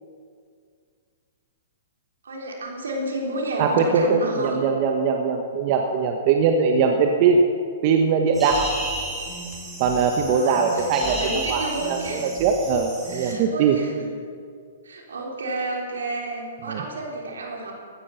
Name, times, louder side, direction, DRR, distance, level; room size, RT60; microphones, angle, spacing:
voice 1, 2.2-4.6 10.3-12.3 13.1-14.1 14.8-17.7, right 2 dB, 85° right, 0 dB, 3.6 m, -31 dB
voice 2, 3.6-7.4 7.8-8.7 9.8-11.1 11.5-13.8 16.7-16.8, right 5 dB, 45° right, 3 dB, 1.2 m, -21 dB
sound 1, 8.3-13.3, right 1 dB, 10° right, 4.3 m, -33 dB
16.0 x 12.5 x 5.8 m, 2.2 s
hypercardioid pair, 125°, 0 cm